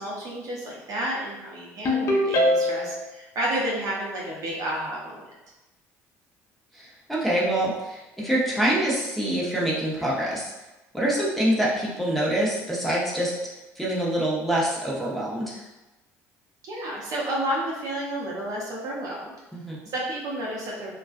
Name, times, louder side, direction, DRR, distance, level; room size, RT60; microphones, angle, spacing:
voice 1, 0.0-5.2 16.6-19.3 19.9-20.9, right 1 dB, 50° right, -3 dB, 0.7 m, -31 dB
Ringtone, 1.8-3.0, left 1 dB, 40° left, 0.7 m, -22 dB
voice 2, 6.7-10.5 10.9-13.3 13.8-15.6 19.5-19.8, right 1 dB, ahead, -6 dB, 0.8 m, -25 dB
2.3 x 2.2 x 2.5 m, 1.0 s
hypercardioid pair, 65°, 8 cm